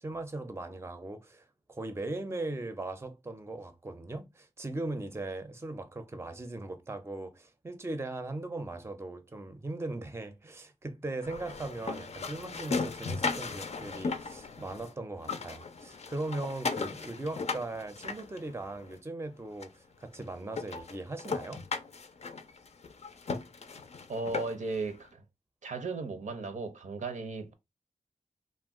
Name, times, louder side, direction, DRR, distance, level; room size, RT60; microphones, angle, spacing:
voice 1, 0.0-21.7, right 2 dB, 20° right, 0.5 m, -39 dB
sound 1, 11.2-14.9 15.2-18.9 19.6-19.7 20.1-20.2 20.5-24.8, left 4 dB, 55° left, 0.4 m, -37 dB
voice 2, 24.1-25.2 25.6-27.5, right 3 dB, 70° right, 0.6 m, -36 dB
2.4 x 2.1 x 3.5 m
wide cardioid pair, 65°, 13 cm